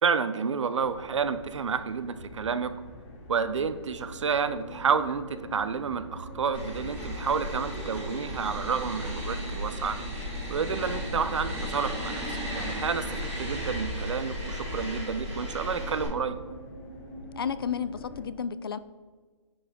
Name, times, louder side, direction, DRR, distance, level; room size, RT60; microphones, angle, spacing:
voice 1, 0.0-2.7 3.3-10.0 10.5-16.4, right 6 dB, 80° right, 12 dB, 0.7 m, -30 dB
sound 1, 0.7-18.2, equal, 30° left, 1.6 m, -42 dB
sound 2, 6.5-16.0, equal, 10° right, 2.1 m, -35 dB
voice 2, 17.4-18.8, left 7 dB, 50° left, 15 dB, 0.4 m, -32 dB
10.0 x 6.0 x 3.6 m, 1.4 s
hypercardioid pair, 180°, 16 cm